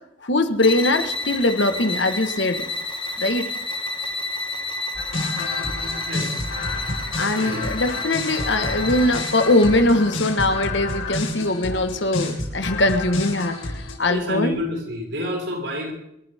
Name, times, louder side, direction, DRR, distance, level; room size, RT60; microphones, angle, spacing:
voice 1, 0.2-2.7 3.2-3.5 7.2-14.6, left 2 dB, 60° left, 8 dB, 1.4 m, -21 dB
sound 1, 0.6-9.9, left 2 dB, 25° left, 1.3 m, -30 dB
sound 2, 4.9-14.0, left 2 dB, 90° left, 7.7 m, -29 dB
voice 2, 6.1-6.5 7.4-7.7 14.1-15.9, left 1 dB, 60° right, -2 dB, 7.2 m, -28 dB
27.5 x 13.5 x 3.6 m, 0.80 s
head